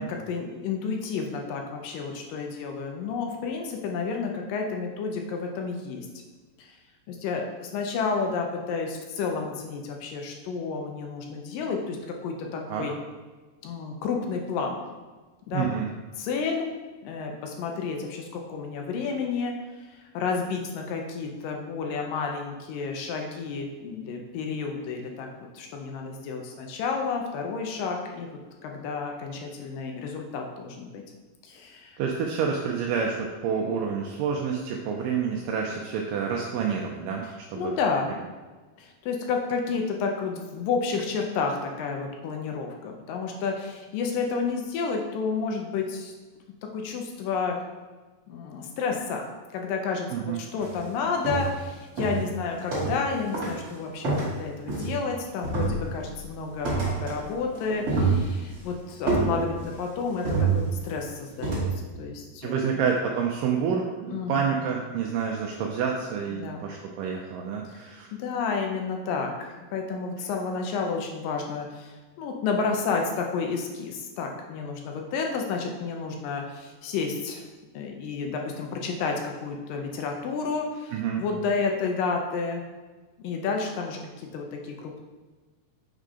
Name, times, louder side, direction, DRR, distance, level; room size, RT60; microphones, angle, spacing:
voice 1, 0.0-6.1 6.6-6.7 7.1-12.9 13.6-14.8 15.5-15.7 16.2-16.7 17.0-19.5 20.1-25.3 25.5-31.0 31.4-32.0 37.5-38.2 38.8-46.1 46.7-47.6 48.3-49.3 49.5-62.8 64.1-64.6 66.3-66.6 68.1-77.4 77.7-82.6 83.2-85.0, left 5 dB, 80° left, 2 dB, 2.3 m, -31 dB
voice 2, 15.5-15.9 32.0-37.7 50.1-50.4 62.4-68.1 80.9-81.2, right 6 dB, 80° right, 0 dB, 2.1 m, -28 dB
sound 1, 50.6-50.8 51.2-51.6 52.0-53.1 53.3-53.6 54.0-55.1 55.4-56.1 56.6-57.2 57.5-58.6 59.1-59.8 60.2-61.0 61.4-61.8, right 3 dB, 40° right, 2.8 m, -27 dB
6.5 x 3.8 x 4.8 m, 1.3 s
omnidirectional pair, 4.2 m